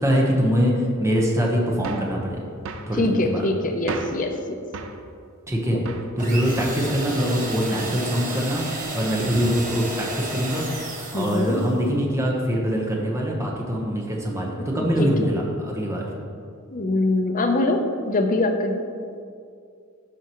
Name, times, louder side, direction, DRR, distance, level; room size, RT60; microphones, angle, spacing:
voice 1, 0.0-2.4 2.9-3.4 5.5-5.8 6.2-8.6 8.9-10.6 11.1-16.1, equal, 15° right, -2 dB, 1.0 m, -23 dB
sound 1, 1.8-2.2 2.6-2.9 3.9-4.3 4.7-5.0 5.8-6.1 6.6-6.9, right 4 dB, 65° right, 0.5 m, -34 dB
voice 2, 3.0-4.6 5.7-5.8 11.1-11.6 14.6-14.7 15.0-15.1 16.7-17.8 18.1-18.8, left 2 dB, 40° left, 4 dB, 0.7 m, -23 dB
sound 2, 6.2-11.8, right 2 dB, 40° right, 1.1 m, -33 dB
13.0 x 4.7 x 3.0 m, 2.3 s
head